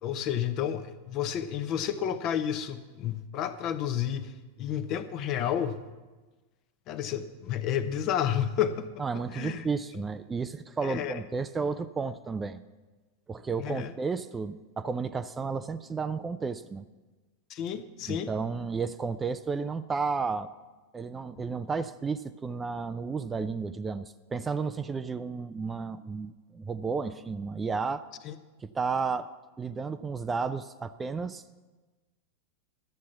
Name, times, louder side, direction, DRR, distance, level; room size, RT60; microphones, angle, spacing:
voice 1, 0.0-4.3 4.6-5.8 6.9-9.0 9.3-9.7 10.8-11.2 13.6-13.9 17.5-18.3 28.2-28.3, left 9 dB, 40° left, 11 dB, 0.8 m, -31 dB
voice 2, 9.0-12.6 13.3-16.8 18.1-20.5 20.9-28.1 28.6-29.3 29.6-31.4, right 5 dB, 15° right, 12 dB, 0.4 m, -32 dB
13.0 x 7.4 x 7.1 m, 1.2 s
figure-of-eight pair, 90°, 0 cm